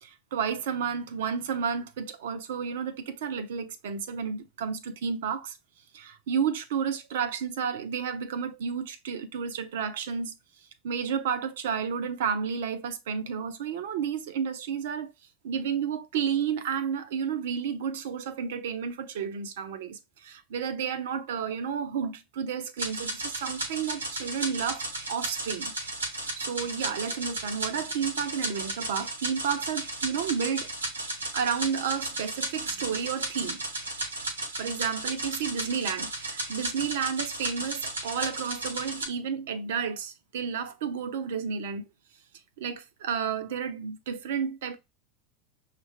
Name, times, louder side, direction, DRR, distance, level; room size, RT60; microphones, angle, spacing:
voice 1, 0.0-5.6 5.9-10.3 10.8-15.1 15.4-25.7 26.4-30.7 31.3-33.6 34.6-41.8 42.6-44.8, right 7 dB, 70° right, 0.8 m, -31 dB
sound 1, 22.8-39.1, right 2 dB, 85° right, 1.2 m, -34 dB
6.2 x 2.5 x 3.3 m
hypercardioid pair, 85°, 0 cm